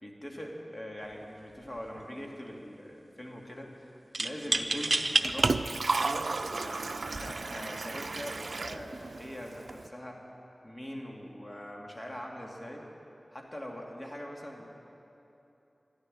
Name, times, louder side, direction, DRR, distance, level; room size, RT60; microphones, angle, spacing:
voice 1, 0.0-3.7 4.2-6.3 6.6-10.2 10.6-12.8 13.3-14.6, equal, 30° left, 0 dB, 2.5 m, -42 dB
sound 1, 1.0-1.2 1.6-2.2 4.1-5.3 6.0-6.1 7.0-7.3, right 2 dB, 50° right, 0.8 m, -29 dB
Liquid, 4.9-9.9, right 3 dB, 80° right, 0.4 m, -33 dB
13.0 x 11.5 x 9.9 m, 3.0 s
wide cardioid pair, 50°, 0 cm